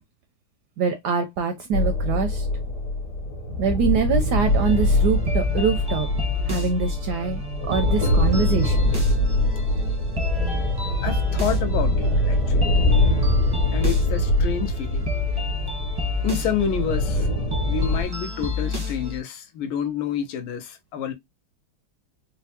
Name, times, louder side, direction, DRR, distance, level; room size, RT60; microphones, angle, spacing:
voice 1, 0.8-2.5 3.6-6.1 6.5-7.4 7.7-8.9, right 6 dB, 75° right, 0.9 m, -24 dB
sound 1, 1.7-18.0, left 1 dB, 55° left, 1.6 m, -23 dB
sound 2, 4.4-19.2, left 4 dB, 25° right, 0.5 m, -30 dB
voice 2, 11.0-12.7 13.7-15.1 16.2-17.3 17.7-21.1, left 8 dB, 85° left, 1.5 m, -28 dB
4.3 x 2.1 x 2.7 m
omnidirectional pair, 2.2 m